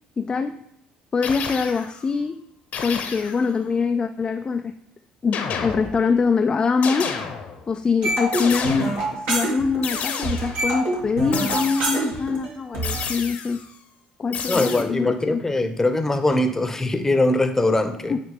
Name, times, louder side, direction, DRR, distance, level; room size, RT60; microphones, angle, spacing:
voice 1, 0.2-0.6 1.1-2.4 2.8-4.7 5.2-7.1 7.7-13.6 14.2-15.4 18.1-18.2, left 5 dB, 30° left, 7 dB, 0.3 m, -24 dB
sound 1, 1.2-2.0 2.7-3.5 5.3-6.2 6.8-7.7 8.3-9.2 9.8-10.7 11.3-12.2 12.8-13.7 14.3-14.8, left 6 dB, 60° left, 0.9 m, -31 dB
sound 2, 8.0-10.0 10.2-13.0, right 1 dB, 70° right, 2.0 m, -26 dB
voice 2, 14.5-18.2, left 2 dB, 15° left, 7 dB, 0.8 m, -21 dB
8.8 x 3.0 x 3.6 m, 0.79 s
supercardioid pair, 70°, 3 cm